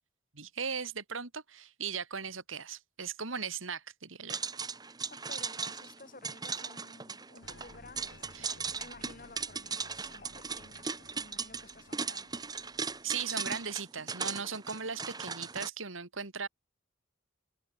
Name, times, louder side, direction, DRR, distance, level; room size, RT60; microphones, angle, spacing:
voice 1, 0.3-4.4 8.3-8.6 13.0-16.5, right 6 dB, 90° right, 2.9 m, -38 dB
sound 1, 4.3-15.7, right 5 dB, 20° right, 1.3 m, -38 dB
voice 2, 5.1-12.4, left 3 dB, 45° left, 6.7 m, -54 dB
sound 2, 7.4-13.7, left 2 dB, 65° left, 4.9 m, -57 dB
head